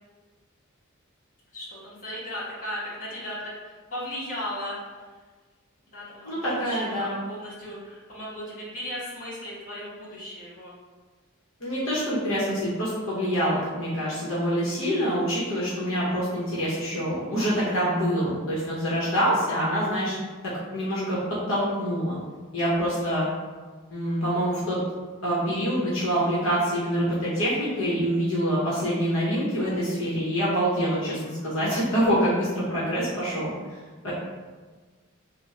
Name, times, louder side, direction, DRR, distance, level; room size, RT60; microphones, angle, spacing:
voice 1, 1.5-4.8 5.8-10.7 23.0-23.1 32.9-33.3, left 1 dB, 40° left, -8 dB, 1.3 m, -36 dB
voice 2, 6.2-7.1 11.6-20.1 20.4-21.2 21.5-22.2 22.5-23.3 23.9-24.8 25.2-33.5 34.0-34.1, equal, 70° left, -8 dB, 1.0 m, -26 dB
3.5 x 2.2 x 4.2 m, 1.4 s
head